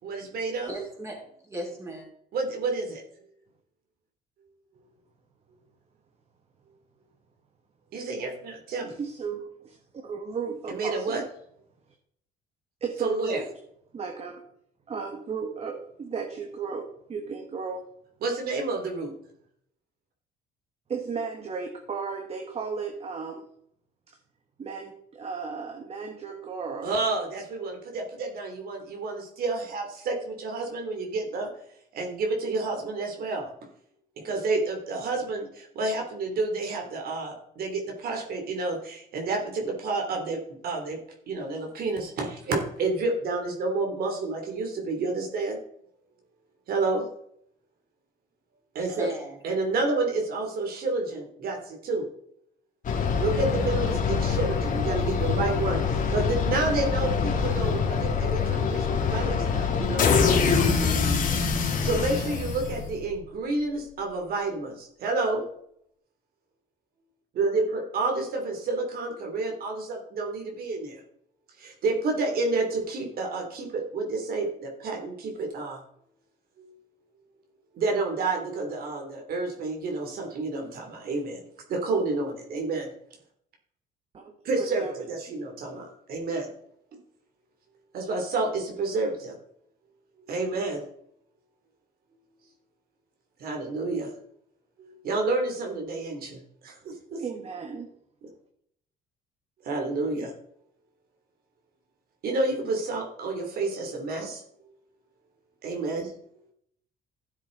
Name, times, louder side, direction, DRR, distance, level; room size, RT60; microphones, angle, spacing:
voice 1, 0.0-0.7 2.3-3.0 7.9-9.0 10.7-11.2 13.0-13.4 18.2-19.1 26.8-31.5 31.9-33.5 34.2-41.0 41.3-45.6 46.7-47.0 48.7-49.1 49.4-52.0 53.2-60.2 61.8-65.4 67.3-71.0 71.6-75.8 76.6-76.7 77.7-81.4 81.7-82.9 84.4-86.5 87.9-89.3 90.3-90.8 93.4-94.1 94.8-97.2 99.6-100.3 102.2-104.4 105.6-106.1, right 3 dB, 65° right, 2.9 m, -29 dB
voice 2, 0.7-2.1 48.8-49.3, right 2 dB, 15° right, 4.5 m, -37 dB
voice 3, 9.0-9.8 10.0-11.3 12.8-13.5 13.9-14.4 14.9-17.8 20.9-23.5 24.1-24.2 24.6-26.9 84.1-85.0 97.2-97.9, right 5 dB, 35° right, 1.5 m, -35 dB
sound 1, 52.8-63.1, left 5 dB, 50° left, 2.2 m, -25 dB
13.0 x 7.4 x 3.9 m
cardioid pair, 110°, 17 cm